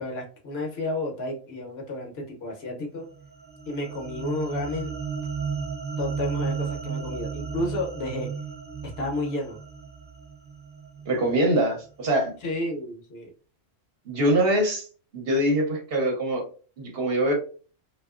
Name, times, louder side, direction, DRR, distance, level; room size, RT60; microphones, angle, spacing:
voice 1, 0.0-3.1 3.7-4.9 6.0-8.3 9.0-9.6 12.4-13.3, left 2 dB, 60° left, 1 dB, 0.8 m, -31 dB
sound 1, 3.1-11.6, right 6 dB, 30° right, 0.4 m, -34 dB
voice 2, 11.1-12.3 14.1-14.9 15.1-16.4 16.8-17.3, right 1 dB, 60° right, 1 dB, 0.8 m, -23 dB
2.7 x 2.3 x 2.3 m, 0.39 s
omnidirectional pair, 1.3 m